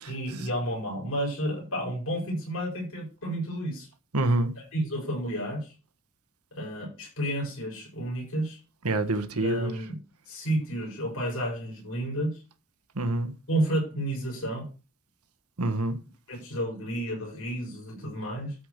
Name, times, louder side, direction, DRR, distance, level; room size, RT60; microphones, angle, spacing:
voice 1, 0.1-3.9 4.6-5.7 6.5-8.6 9.3-10.0 10.3-12.3 13.5-14.7 16.3-18.6, right 1 dB, 65° left, 7.1 m, -31 dB
voice 2, 4.1-4.5 8.8-9.7 13.0-13.3 15.6-16.0, right 2 dB, 85° right, 1.4 m, -26 dB
12.5 x 4.9 x 6.7 m
head